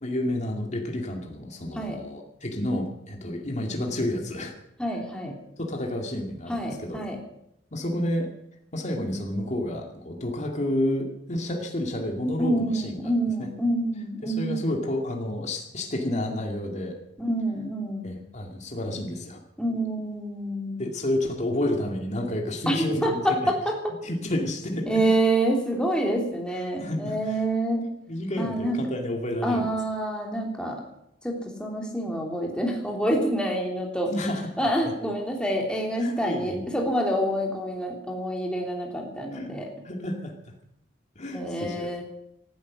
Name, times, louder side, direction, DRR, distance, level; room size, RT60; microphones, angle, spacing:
voice 1, 0.0-4.5 5.6-7.0 7.7-8.3 8.7-13.1 13.4-13.5 14.2-17.0 18.0-19.4 20.8-23.5 24.0-24.9 26.8-27.4 28.1-29.7 34.1-34.4 36.0-36.8 39.3-39.5 39.8-40.3 41.2-41.9, left 1 dB, 40° left, 2 dB, 2.4 m, -30 dB
voice 2, 4.8-5.3 6.5-7.2 12.4-14.7 17.2-18.2 19.6-20.8 22.7-23.9 24.9-27.8 28.4-28.8 29.4-30.8 31.2-34.1 34.6-39.7 41.3-42.0, right 1 dB, 5° left, -1 dB, 3.2 m, -27 dB
18.0 x 12.5 x 6.3 m, 0.76 s
head